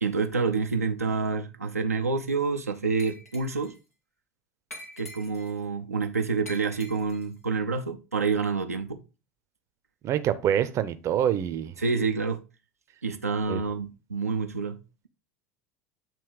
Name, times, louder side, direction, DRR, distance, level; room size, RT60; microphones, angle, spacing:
voice 1, 0.0-3.7 5.0-9.0 11.8-12.4 13.0-14.8, right 4 dB, 85° right, 0.6 m, -28 dB
Glass, 3.0-3.8 4.7-5.6 6.5-7.3, left 1 dB, 85° left, 1.5 m, -46 dB
voice 2, 10.0-11.7 13.5-13.6, right 10 dB, 40° right, 0.7 m, -26 dB
8.8 x 3.0 x 4.8 m
figure-of-eight pair, 75°, 8 cm